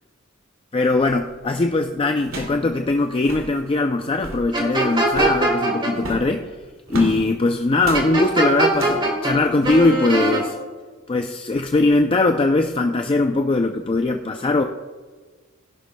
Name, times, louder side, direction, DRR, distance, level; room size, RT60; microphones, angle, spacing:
voice 1, 0.7-6.5 6.9-10.6 11.1-14.6, left 2 dB, 25° left, 5 dB, 0.4 m, -20 dB
sound 1, 1.3-1.5 2.2-2.6 2.9-3.0 3.2-3.5 4.0-4.5 5.1-5.4 6.0-7.2 7.8-8.1 8.7-9.1 9.6-9.8, right 1 dB, 85° right, 2.5 m, -33 dB
sound 2, 4.5-5.9 7.9-9.3 9.6-10.4, right 2 dB, 25° right, 1.9 m, -21 dB
17.0 x 11.0 x 2.2 m, 1.4 s
head